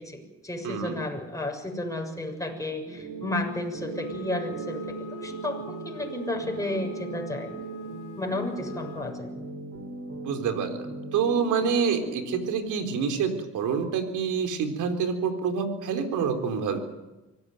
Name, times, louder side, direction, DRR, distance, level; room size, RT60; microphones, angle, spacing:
voice 1, 0.0-7.5 8.2-9.3, left 1 dB, 10° left, 2 dB, 6.8 m, -32 dB
voice 2, 0.6-1.0 10.2-10.8 11.1-16.8, right 6 dB, 85° right, 6 dB, 4.0 m, -27 dB
sound 1, 2.8-12.5, right 2 dB, 45° right, 6.9 m, -39 dB
Wind instrument woodwind instrument, 3.9-9.2, right 2 dB, 85° left, 3.3 m, -43 dB
24.5 x 18.0 x 9.3 m, 1.1 s
cardioid pair, 90°, 30 cm